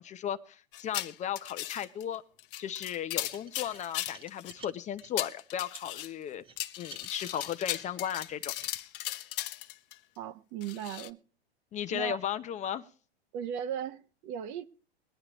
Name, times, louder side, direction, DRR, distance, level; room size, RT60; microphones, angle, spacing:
voice 1, 0.0-2.2 2.6-6.4 6.8-8.5 11.7-12.9, left 10 dB, 20° left, 0.7 m, -35 dB
sound 1, 0.7-2.0 2.4-4.5 5.0-6.1 6.6-9.9 10.6-11.1, left 14 dB, 60° left, 0.9 m, -37 dB
sound 2, 3.2-5.1 5.7-5.9 6.4-8.8, right 6 dB, 15° right, 0.9 m, -52 dB
voice 2, 10.2-11.2 11.9-12.2 13.3-14.6, right 9 dB, 45° right, 1.0 m, -37 dB
22.0 x 9.6 x 3.0 m
hypercardioid pair, 115°, 32 cm